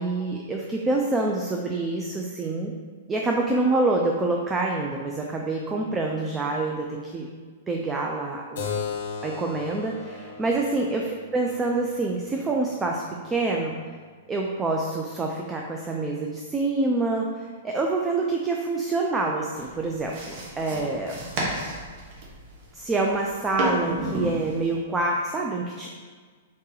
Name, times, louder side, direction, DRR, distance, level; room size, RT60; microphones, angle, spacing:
voice 1, 0.0-2.7 3.1-7.3 7.7-8.7 9.2-11.1 11.3-13.7 14.3-21.2 22.7-25.9, right 2 dB, 15° right, 0 dB, 0.3 m, -26 dB
Keyboard (musical), 8.5-13.7, left 6 dB, 65° left, 0.7 m, -37 dB
sound 1, 19.5-24.7, right 2 dB, 50° right, 1.0 m, -32 dB
3.6 x 2.7 x 3.8 m, 1.5 s
hypercardioid pair, 135°, 0 cm